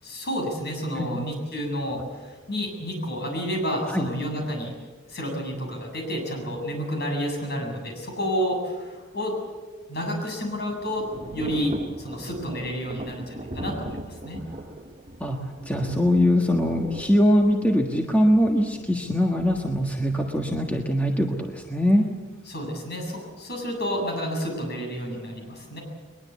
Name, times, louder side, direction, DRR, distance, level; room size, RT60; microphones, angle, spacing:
voice 1, 0.0-4.7 5.1-9.3 9.9-11.1 11.3-14.4 22.5-25.8, equal, 50° left, 1 dB, 7.7 m, -30 dB
Thunder / Rain, 10.0-21.9, right 1 dB, 30° right, 1.2 m, -40 dB
voice 2, 15.2-22.0, equal, 5° left, 1 dB, 1.4 m, -22 dB
21.5 x 21.5 x 8.4 m, 1.4 s
head